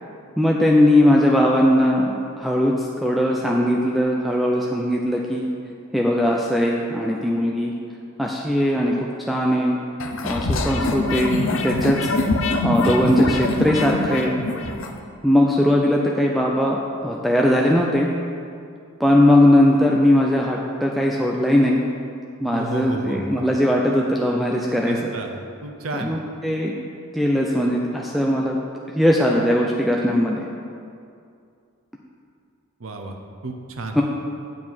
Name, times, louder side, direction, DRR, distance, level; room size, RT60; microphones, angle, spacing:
voice 1, 0.4-5.4 5.9-7.7 8.2-9.8 10.2-12.0 12.6-14.3 15.2-18.1 19.0-21.8 22.4-25.1 26.0-26.7 27.1-28.6 28.9-30.5 34.0-34.1, left 1 dB, ahead, -2 dB, 0.5 m, -19 dB
sound 1, 10.0-14.9, left 2 dB, 70° left, 0.7 m, -24 dB
voice 2, 22.5-23.4 24.9-25.3 25.6-26.2 32.8-33.2 33.4-34.0, right 2 dB, 85° right, 4 dB, 0.8 m, -32 dB
8.2 x 4.7 x 7.4 m, 2.4 s
head